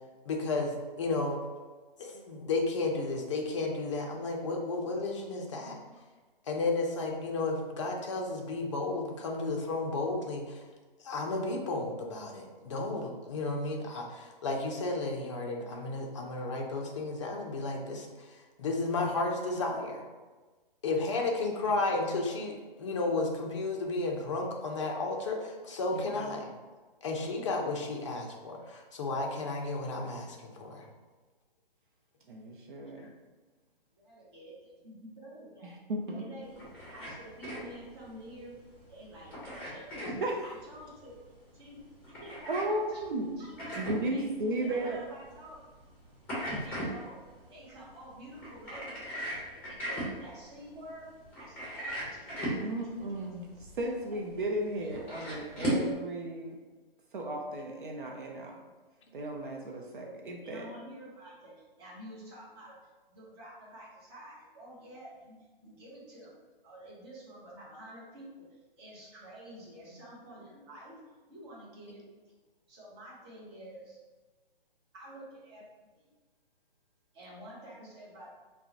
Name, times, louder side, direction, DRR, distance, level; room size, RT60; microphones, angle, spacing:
voice 1, 0.3-1.4 2.0-5.8 6.4-10.6 11.0-20.0 20.8-26.5 27.0-30.9 33.0-33.1, left 3 dB, 30° left, 1 dB, 0.4 m, -33 dB
voice 2, 25.9-26.3 32.3-33.1 35.6-36.5 40.2-40.3 42.5-43.3 43.8-45.0 46.5-46.6 52.6-53.5 53.7-56.6 57.1-58.6 59.1-60.7, right 1 dB, 60° right, 0 dB, 0.5 m, -35 dB
voice 3, 34.1-35.8 36.1-36.6 36.9-38.6 38.9-40.1 40.4-41.1 41.5-41.8 42.2-42.5 42.9-43.0 43.4-43.8 44.1-44.3 44.5-45.6 46.4-47.2 47.5-51.1 51.4-52.5 60.0-62.8 63.1-65.3 65.6-66.4 66.6-68.4 68.8-71.0 71.3-72.0 72.7-74.0 74.9-75.7 75.9-76.1 77.1-78.3, right 1 dB, 25° right, -6 dB, 0.8 m, -49 dB
sound 1, 36.4-55.9, equal, 5° left, 0.8 m, -39 dB
3.3 x 2.1 x 2.7 m, 1.3 s
figure-of-eight pair, 140°, 29 cm